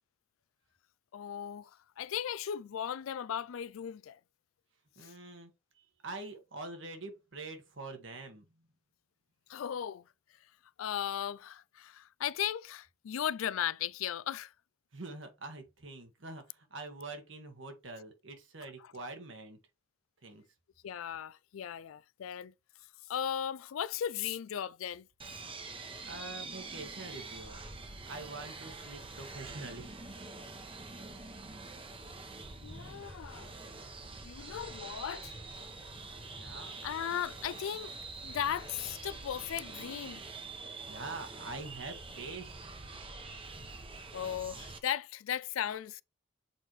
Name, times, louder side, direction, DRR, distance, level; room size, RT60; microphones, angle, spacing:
voice 1, 1.1-4.2 5.0-5.1 9.5-10.0 10.8-14.5 18.8-18.9 20.8-22.5 23.1-25.1 32.6-33.5 34.2-35.4 36.8-38.0 38.2-40.2 44.1-46.0, left 9 dB, 85° left, 0.4 m, -37 dB
voice 2, 5.0-5.5 6.0-8.6 14.9-19.6 20.2-20.4 26.0-27.6 28.1-30.0 36.3-36.8 40.9-42.6, right 3 dB, 65° right, 1.7 m, -45 dB
sound 1, 25.2-44.8, right 3 dB, 25° right, 1.0 m, -45 dB
7.5 x 4.5 x 3.2 m
head